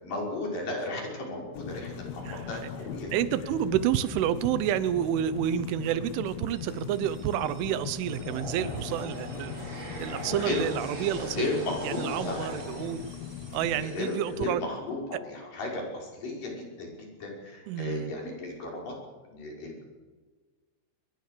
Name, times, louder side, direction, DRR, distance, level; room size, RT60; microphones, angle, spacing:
voice 1, 0.0-3.1 10.3-10.6 11.3-12.5 13.8-18.9 19.3-19.8, left 2 dB, 40° left, -1 dB, 7.0 m, -34 dB
sound 1, 1.5-13.9, left 8 dB, 80° left, 2.1 m, -40 dB
voice 2, 2.2-2.7 3.1-9.5 10.0-11.4 11.8-13.1 13.5-14.6 17.7-18.1, right 10 dB, 75° right, 14 dB, 3.2 m, -29 dB
sound 2, 6.5-14.5, right 1 dB, 25° right, 5.7 m, -42 dB
24.0 x 21.5 x 6.8 m, 1.4 s
omnidirectional pair, 5.9 m